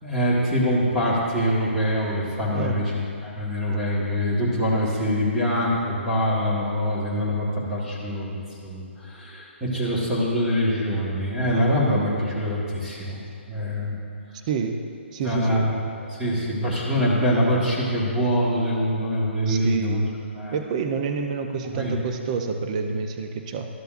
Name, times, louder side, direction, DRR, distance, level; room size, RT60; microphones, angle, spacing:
voice 1, 0.0-2.8 3.2-13.2 13.5-14.0 15.2-15.8 16.1-20.1 20.3-20.6 21.7-21.9 22.9-23.0, equal, 5° right, -7 dB, 1.5 m, -24 dB
voice 2, 2.5-2.8 14.5-14.8 15.1-15.7 17.0-17.1 19.5-20.1 20.5-23.7, right 5 dB, 35° right, 5 dB, 0.6 m, -28 dB
13.0 x 6.8 x 2.5 m, 2.4 s
hypercardioid pair, 155°, 7 cm